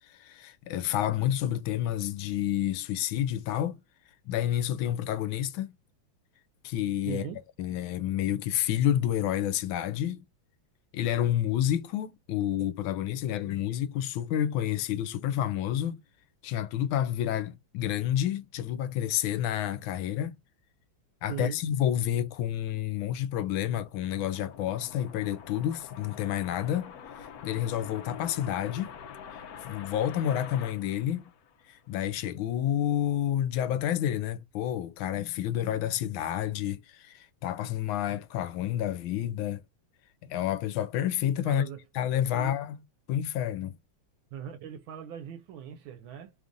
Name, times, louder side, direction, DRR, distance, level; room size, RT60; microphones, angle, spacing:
voice 1, 0.1-3.8 4.3-5.7 6.6-7.2 7.6-10.2 10.9-16.0 16.4-20.4 21.2-29.0 29.6-31.3 31.7-39.6 40.2-41.6 41.9-42.7 43.1-43.8, left 11 dB, 85° left, 1.4 m, -29 dB
voice 2, 7.1-7.4 21.3-21.6 41.4-41.8 42.3-42.6 44.3-46.3, right 9 dB, 80° right, 1.4 m, -39 dB
sound 1, 23.7-31.9, left 7 dB, 70° left, 0.9 m, -46 dB
3.4 x 2.5 x 3.6 m
omnidirectional pair, 2.2 m